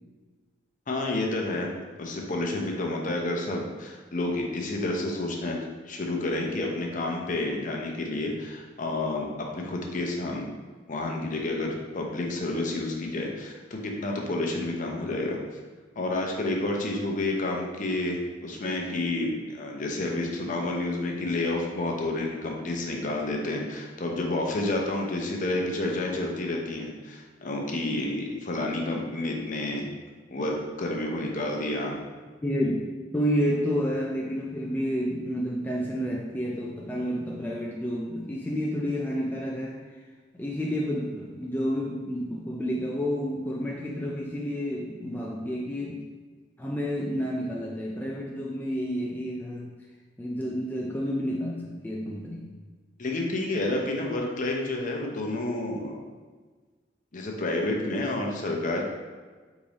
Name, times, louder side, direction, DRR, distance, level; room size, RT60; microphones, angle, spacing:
voice 1, 0.9-1.7 2.0-5.6 5.9-10.5 10.9-15.4 16.0-29.9 30.3-32.0 53.0-56.1 57.1-58.8, left 2 dB, 45° left, 0 dB, 0.7 m, -30 dB
voice 2, 32.4-39.8 40.4-46.1 46.6-49.7 50.2-52.5, equal, 10° left, -3 dB, 0.4 m, -30 dB
3.6 x 3.3 x 4.0 m, 1.4 s
head